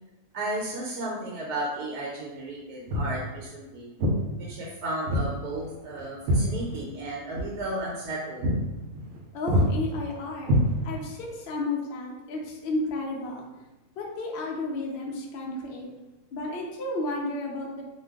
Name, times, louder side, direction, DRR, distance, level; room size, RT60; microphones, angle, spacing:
voice 1, 0.3-3.9 4.4-8.5, right 1 dB, 85° right, -3 dB, 1.2 m, -34 dB
Walk footsteps, 2.9-3.2 4.0-4.2 5.1-5.3 5.6-7.1 7.3-7.5 7.9-8.1 8.4-8.6 8.9-9.2 9.5-9.7 10.4-11.1, equal, 70° right, 0.9 m, -25 dB
voice 2, 9.3-10.6 10.8-13.5 14.0-15.9 16.3-17.8, left 2 dB, 85° left, -1 dB, 0.5 m, -32 dB
2.5 x 2.3 x 3.4 m, 1.1 s
omnidirectional pair, 1.7 m